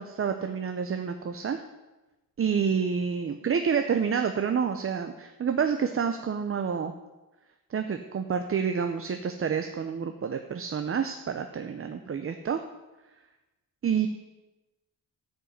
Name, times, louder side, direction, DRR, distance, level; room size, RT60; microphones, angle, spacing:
voice 1, 0.0-1.6 2.4-6.9 7.7-12.6 13.8-14.1, right 6 dB, 40° right, 7 dB, 0.6 m, -28 dB
13.5 x 5.4 x 8.0 m, 1.1 s
wide cardioid pair, 165°, 36 cm